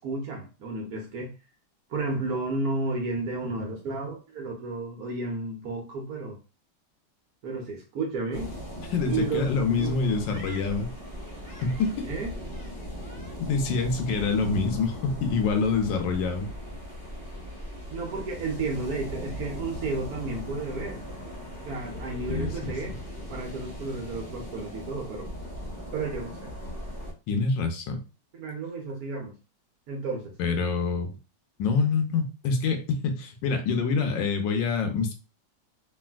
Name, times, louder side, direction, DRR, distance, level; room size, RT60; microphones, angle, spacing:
voice 1, 0.0-1.3 1.9-6.4 7.4-8.5 9.1-9.5 9.8-10.0 12.0-12.3 17.9-21.0 21.6-22.9 23.3-25.3 25.9-26.5 28.4-29.3 29.9-30.3, right 3 dB, 65° right, 1 dB, 1.0 m, -32 dB
sound 1, 8.3-27.1, equal, 40° left, 0.8 m, -39 dB
voice 2, 8.9-10.9 11.6-12.1 13.5-16.5 22.3-22.7 27.3-28.0 30.4-31.1 31.6-35.1, left 4 dB, 80° left, 6 dB, 1.3 m, -26 dB
3.3 x 2.5 x 2.2 m, 0.31 s
omnidirectional pair, 2.0 m